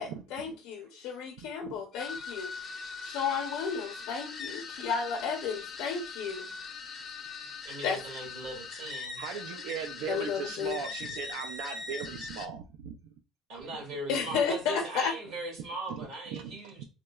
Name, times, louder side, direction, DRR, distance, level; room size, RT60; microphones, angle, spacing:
voice 1, 0.0-2.5 3.0-6.5 7.8-8.0 10.1-10.8 14.1-15.1, left 6 dB, 80° left, 0.6 m, -32 dB
voice 2, 1.4-1.7 9.2-13.0 16.3-16.8, right 7 dB, 90° right, 0.4 m, -38 dB
sound 1, 1.9-12.5, left 5 dB, 30° left, 0.4 m, -41 dB
voice 3, 7.6-9.2 9.6-10.4 13.5-16.8, right 2 dB, 60° right, 1.6 m, -40 dB
3.7 x 2.1 x 2.3 m
cardioid pair, 155°, 0 cm